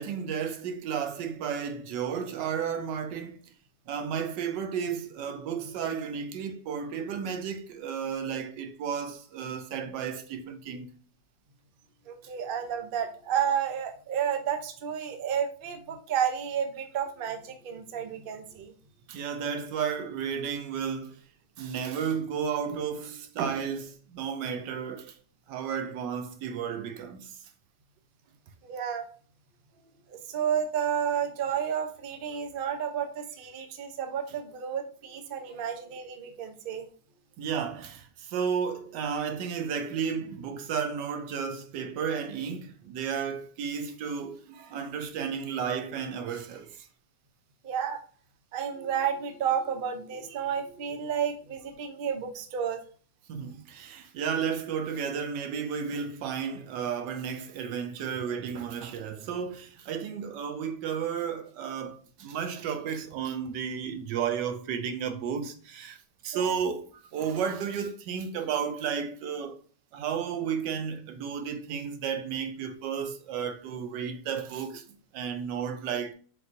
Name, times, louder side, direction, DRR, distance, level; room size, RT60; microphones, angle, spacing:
voice 1, 0.0-3.4 3.9-10.9 19.1-21.2 21.6-25.2 25.5-27.4 35.5-35.6 37.4-46.9 53.3-66.0 66.2-69.6 69.9-76.1, right 7 dB, 85° right, 1.3 m, -33 dB
voice 2, 12.1-18.7 28.6-29.0 30.1-36.9 47.6-48.0 48.5-52.8 66.3-66.5, right 8 dB, 65° right, 0.5 m, -31 dB
4.6 x 3.9 x 2.5 m
omnidirectional pair, 1.9 m